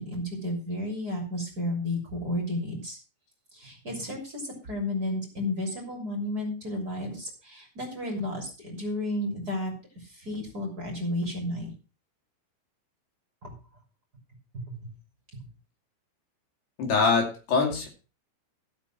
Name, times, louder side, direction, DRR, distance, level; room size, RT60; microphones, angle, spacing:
voice 1, 0.0-3.0 3.5-11.7 13.4-13.5 14.5-14.8 15.3-15.5, left 1 dB, 25° right, 0 dB, 2.4 m, -32 dB
voice 2, 16.8-17.9, left 4 dB, 55° left, 1 dB, 4.4 m, -24 dB
15.0 x 6.2 x 5.9 m, 0.34 s
omnidirectional pair, 5.9 m